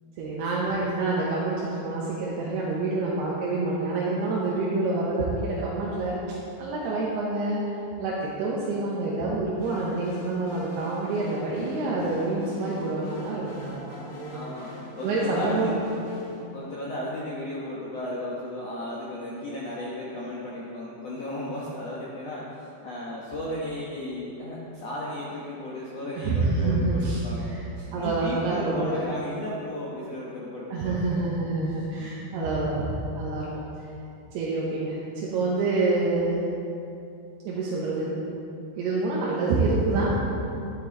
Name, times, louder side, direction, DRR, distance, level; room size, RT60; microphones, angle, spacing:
voice 1, 0.2-6.2 6.6-7.6 8.0-14.4 15.0-15.7 26.1-27.2 27.5-27.6 27.9-29.0 30.7-33.5 34.3-36.4 37.4-38.1 38.8-40.1, right 3 dB, 80° right, -6 dB, 3.1 m, -27 dB
sound 1, 9.6-16.4, left 1 dB, 55° left, 2.5 m, -44 dB
voice 2, 14.3-15.8 16.5-31.2, left 1 dB, 75° left, -6 dB, 1.5 m, -35 dB
11.5 x 9.2 x 3.9 m, 2.7 s
omnidirectional pair, 4.6 m